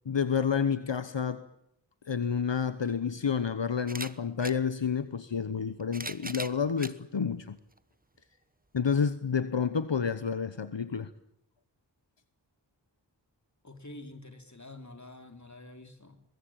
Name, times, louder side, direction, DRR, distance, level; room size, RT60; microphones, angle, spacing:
voice 1, 0.1-1.5 2.1-7.6 8.7-11.1, left 6 dB, 75° left, 12 dB, 1.1 m, -29 dB
sound 1, 2.4-2.5 3.8-4.6 5.6-7.0 7.7-7.8 9.1-9.2, right 2 dB, 20° right, 1.1 m, -40 dB
voice 2, 13.6-16.2, left 2 dB, 40° left, 6 dB, 3.5 m, -47 dB
23.0 x 21.5 x 8.9 m, 0.77 s
wide cardioid pair, 50°, 44 cm